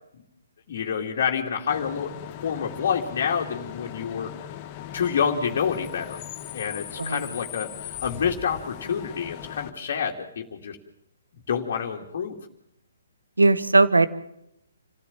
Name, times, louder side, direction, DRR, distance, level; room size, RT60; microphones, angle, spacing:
voice 1, 0.7-2.2 2.4-4.3 4.9-6.2 6.5-10.8 11.5-12.4, left 7 dB, 50° left, -1 dB, 2.6 m, -28 dB
Bus / Idling / Screech, 1.7-9.7, left 12 dB, 30° left, 1.4 m, -39 dB
voice 2, 7.0-7.3 13.4-14.1, right 3 dB, 85° right, 14 dB, 1.4 m, -18 dB
28.0 x 16.0 x 7.4 m, 0.80 s
figure-of-eight pair, 135°, 0 cm